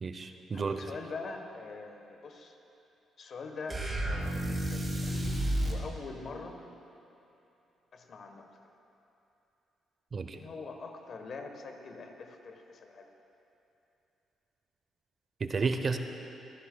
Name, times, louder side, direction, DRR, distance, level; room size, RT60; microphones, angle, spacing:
voice 1, 0.0-0.8 10.1-10.4 15.4-16.0, right 4 dB, 40° right, 8 dB, 0.6 m, -31 dB
voice 2, 0.5-2.6 3.2-5.4 5.6-6.6 7.9-8.5 10.3-13.1, left 4 dB, 55° left, 4 dB, 1.1 m, -44 dB
sound 1, 3.7-5.9, right 1 dB, 25° right, 1.9 m, -31 dB
23.5 x 9.9 x 2.2 m, 2.9 s
cardioid pair, 90°, 0 cm